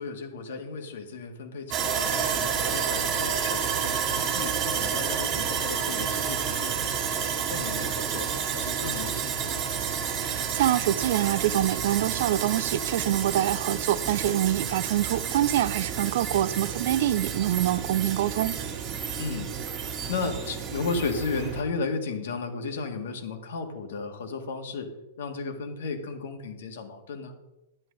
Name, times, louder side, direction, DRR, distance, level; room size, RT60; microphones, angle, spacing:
voice 1, 0.0-8.3 8.5-9.6 19.2-19.5 19.8-24.9 25.2-27.3, left 4 dB, 70° left, 1.9 m, -34 dB
Sawing, 1.7-21.6, right 7 dB, 20° right, 1.6 m, -30 dB
voice 2, 10.2-18.5, right 12 dB, 50° right, 0.5 m, -25 dB
11.0 x 10.0 x 4.0 m
supercardioid pair, 170°, 0 cm